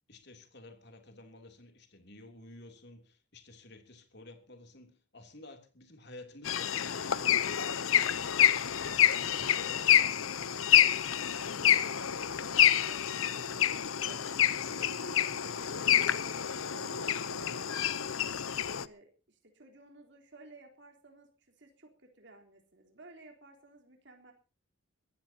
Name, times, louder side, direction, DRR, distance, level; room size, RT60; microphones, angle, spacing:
voice 1, 0.0-7.7, left 2 dB, 50° left, 3.1 m, -52 dB
sound 1, 6.5-18.9, left 10 dB, 75° left, 0.8 m, -28 dB
voice 2, 8.4-12.4 12.7-16.3 16.7-18.2 18.7-24.3, right 2 dB, 55° right, 3.8 m, -56 dB
23.5 x 15.0 x 2.9 m
head